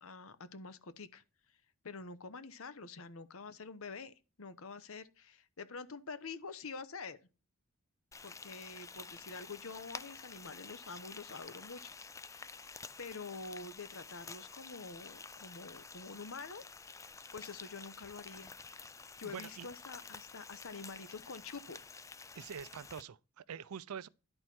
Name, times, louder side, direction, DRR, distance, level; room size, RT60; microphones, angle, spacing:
voice 1, 0.0-1.2 1.8-7.2 8.2-11.8 12.2-12.6 13.0-16.6 17.3-18.5 19.2-21.8, left 4 dB, 70° left, 0.9 m, -47 dB
Frying (food), 8.1-23.0, left 4 dB, 15° left, 0.3 m, -50 dB
voice 2, 19.2-19.7 22.3-24.1, right 7 dB, 85° right, 0.5 m, -45 dB
11.0 x 4.4 x 6.1 m
head